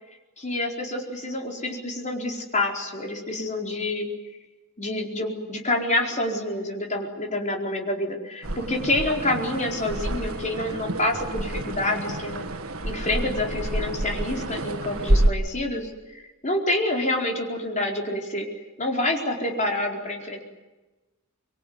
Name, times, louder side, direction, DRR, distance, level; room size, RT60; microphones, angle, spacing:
voice 1, 0.4-4.1 4.8-12.5 12.8-15.9 16.4-18.5 18.8-20.4, left 1 dB, 35° left, 1 dB, 4.6 m, -27 dB
sound 1, 8.4-15.3, right 1 dB, 85° right, 1.7 m, -28 dB
25.0 x 23.0 x 9.6 m, 1.1 s
head